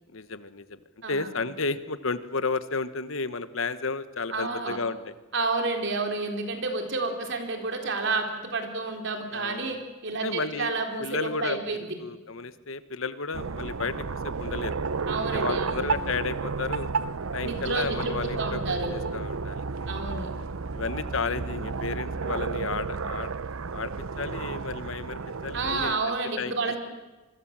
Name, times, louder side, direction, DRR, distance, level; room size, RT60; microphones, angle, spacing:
voice 1, 0.1-0.8 1.1-5.1 9.3-9.7 10.2-10.7 11.0-14.0 14.2-14.8 15.3-16.9 17.3-18.7 19.1-19.6 20.7-23.3 23.7-23.9 24.2-26.5, left 4 dB, 65° left, 13 dB, 1.2 m, -32 dB
voice 2, 4.3-4.8 5.3-9.8 10.0-11.9 15.1-15.9 17.4-18.9 19.9-20.3 25.5-26.8, right 3 dB, 60° right, 4 dB, 4.0 m, -30 dB
sound 1, 13.3-25.9, right 4 dB, 80° right, 0.8 m, -32 dB
27.0 x 22.0 x 7.5 m, 1.2 s
head